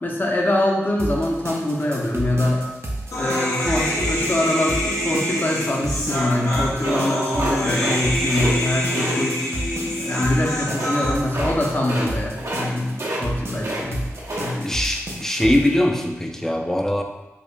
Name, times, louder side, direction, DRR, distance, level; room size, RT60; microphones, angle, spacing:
voice 1, 0.0-2.7 3.2-9.5 9.8-14.1 14.3-14.7, left 1 dB, 35° left, -1 dB, 0.8 m, -24 dB
sound 1, 1.0-15.7, right 1 dB, 50° right, 0.6 m, -31 dB
Human voice, 3.1-11.1, left 1 dB, 70° left, 0.9 m, -26 dB
sound 2, 6.8-8.0 8.3-8.5 8.9-9.1 10.7-11.0 11.3-11.5 11.8-12.1 12.4-12.7 12.9-13.8 14.1-14.5, right 1 dB, 75° right, 0.9 m, -28 dB
voice 2, 14.6-17.0, left 1 dB, 10° left, 3 dB, 0.5 m, -21 dB
4.8 x 2.5 x 2.3 m, 1.0 s
cardioid pair, 45°, 6 cm